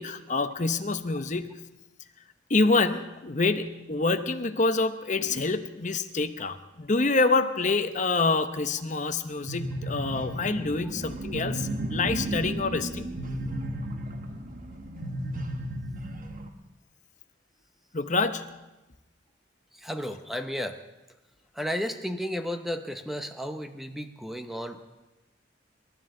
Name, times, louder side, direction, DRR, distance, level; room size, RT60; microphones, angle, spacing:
voice 1, 0.0-1.6 2.5-13.1 17.9-18.6, left 3 dB, 40° left, 8 dB, 0.9 m, -27 dB
sound 1, 9.5-16.5, right 1 dB, 40° right, 1.2 m, -34 dB
voice 2, 19.7-20.8 21.5-24.8, equal, ahead, 7 dB, 0.8 m, -33 dB
28.0 x 13.0 x 3.8 m, 1.1 s
head